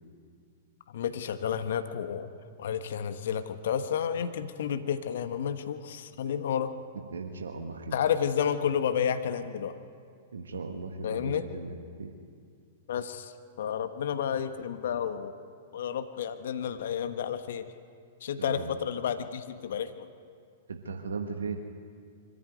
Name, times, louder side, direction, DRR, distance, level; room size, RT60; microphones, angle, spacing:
voice 1, 0.9-2.3 2.6-6.7 7.9-9.8 11.0-11.4 12.9-13.3 13.6-15.3 15.7-17.7 18.2-20.1, left 8 dB, 65° left, 9 dB, 1.2 m, -31 dB
voice 2, 7.1-7.9 10.3-12.1 18.4-18.7 20.7-21.6, right 4 dB, 80° right, 4 dB, 1.6 m, -37 dB
24.5 x 14.5 x 9.2 m, 2.2 s
hypercardioid pair, 110°, 0 cm